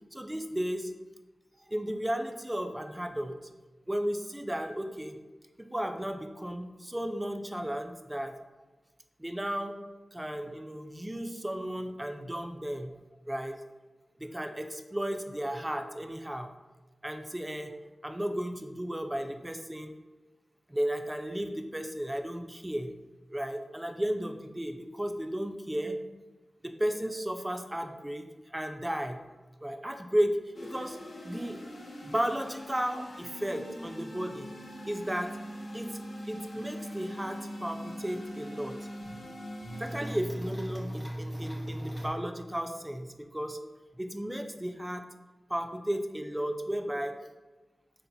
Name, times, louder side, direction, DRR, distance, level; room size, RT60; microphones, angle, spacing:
voice 1, 0.1-0.9 1.7-3.4 3.9-5.2 5.6-8.3 9.2-9.8 10.1-13.0 13.3-13.6 14.2-16.5 17.0-17.8 18.0-20.0 20.7-22.9 23.3-26.0 26.6-29.2 29.6-31.0 31.2-31.6 32.0-34.5 34.8-35.3 35.7-36.0 36.3-38.8 39.8-43.6 43.9-45.0 45.5-47.2, equal, 15° right, 5 dB, 0.3 m, -34 dB
sound 1, 30.5-40.1, equal, 65° left, 0.5 m, -42 dB
sound 2, 37.7-37.8 38.0-38.1 38.6-39.2 39.6-42.1, right 1 dB, 10° left, 0.9 m, -38 dB
4.0 x 2.6 x 2.2 m, 1.2 s
cardioid pair, 60°, 0 cm